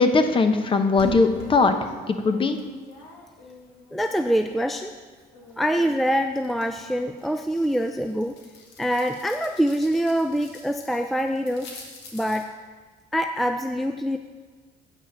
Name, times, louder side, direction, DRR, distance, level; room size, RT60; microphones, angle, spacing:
voice 1, 0.0-1.7 2.1-2.6, left 3 dB, 30° left, 8 dB, 0.9 m, -20 dB
sound 1, 1.0-4.9 5.2-12.4, left 3 dB, 85° left, 2.0 m, -42 dB
voice 2, 3.9-4.9 5.6-8.4 8.8-11.7 12.1-12.5 13.1-14.2, equal, ahead, 6 dB, 0.4 m, -24 dB
8.5 x 5.5 x 6.6 m, 1.4 s
cardioid pair, 110°, 17 cm